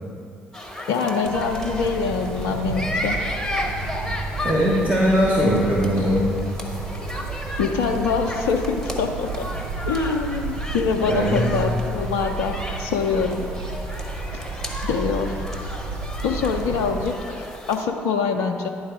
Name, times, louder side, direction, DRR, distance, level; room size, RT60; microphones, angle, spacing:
sound 1, 0.5-17.8, left 1 dB, 5° left, 1.3 m, -34 dB
voice 1, 0.9-3.2 7.6-9.5 9.9-13.5 14.8-15.3 16.2-18.7, left 5 dB, 70° left, 4 dB, 0.5 m, -24 dB
sound 2, 1.2-17.1, right 3 dB, 65° right, 0.6 m, -32 dB
voice 2, 4.4-6.3 11.0-11.5, equal, 25° right, -6 dB, 1.6 m, -20 dB
11.0 x 4.0 x 4.8 m, 2.3 s
hypercardioid pair, 45°, 5 cm